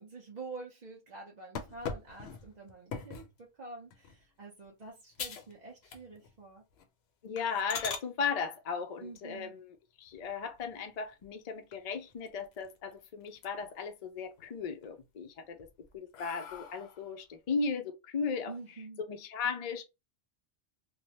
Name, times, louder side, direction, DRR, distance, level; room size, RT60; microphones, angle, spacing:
voice 1, 0.0-6.6 9.0-9.5 18.5-19.0, right 3 dB, 45° right, 0.8 m, -47 dB
sound 1, 1.5-3.3 3.9-4.2 4.6-4.7 5.1-5.5 5.8-6.4 6.7-6.8 7.4-8.1 10.1-10.7 11.2-11.3 11.7-11.8 12.1-12.9 13.2-13.8 14.2-14.9 15.4-17.1, left 6 dB, 75° left, 0.9 m, -42 dB
voice 2, 7.2-15.7 15.9-18.5 19.1-19.8, left 5 dB, 50° left, 0.5 m, -36 dB
3.1 x 2.1 x 2.7 m
omnidirectional pair, 1.1 m